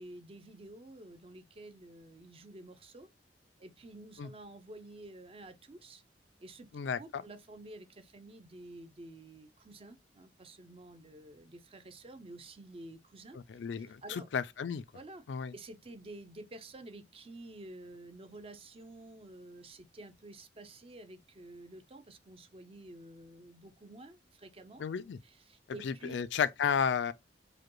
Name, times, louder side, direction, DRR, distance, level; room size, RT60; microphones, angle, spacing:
voice 1, 0.0-3.1 3.6-6.0 6.4-6.7 7.0-13.4 13.8-14.3 14.9-15.2 15.5-24.8 25.2-26.1, right 2 dB, 35° right, 0.5 m, -50 dB
voice 2, 6.7-7.2 13.5-14.8 15.3-15.5 24.8-25.2 25.8-27.1, left 7 dB, 85° left, 0.4 m, -32 dB
4.9 x 2.2 x 3.0 m
head